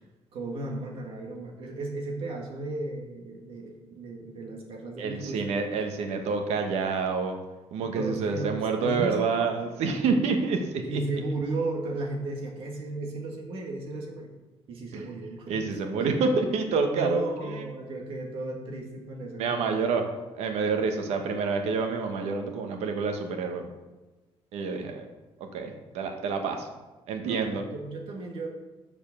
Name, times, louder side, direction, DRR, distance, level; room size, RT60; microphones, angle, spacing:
voice 1, 0.3-5.6 7.8-9.2 10.9-14.3 14.7-16.2 16.9-19.8 27.2-28.5, right 2 dB, 60° right, 1 dB, 1.8 m, -35 dB
voice 2, 5.0-7.3 7.7-11.0 14.9-15.1 15.5-17.6 19.4-20.0 20.3-23.7 24.5-25.0 25.4-26.7 27.1-27.6, right 4 dB, 80° right, 5 dB, 1.3 m, -28 dB
6.9 x 5.6 x 7.2 m, 1.2 s
cardioid pair, 165°, 11 cm